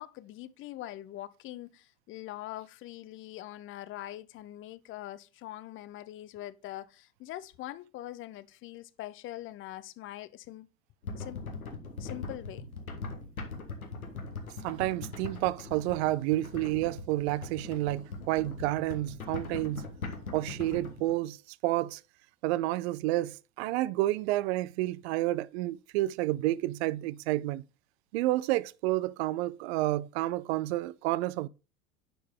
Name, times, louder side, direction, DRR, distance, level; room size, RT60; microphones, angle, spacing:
voice 1, 0.0-10.7 11.2-11.4 12.0-12.6, left 14 dB, 30° left, 0.5 m, -43 dB
sound 1, 11.0-21.1, left 3 dB, 85° left, 1.5 m, -41 dB
voice 2, 14.6-19.9 20.3-22.0 22.4-27.6 28.1-31.5, right 16 dB, 55° right, 0.5 m, -30 dB
10.0 x 4.6 x 3.7 m
figure-of-eight pair, 80°, 41 cm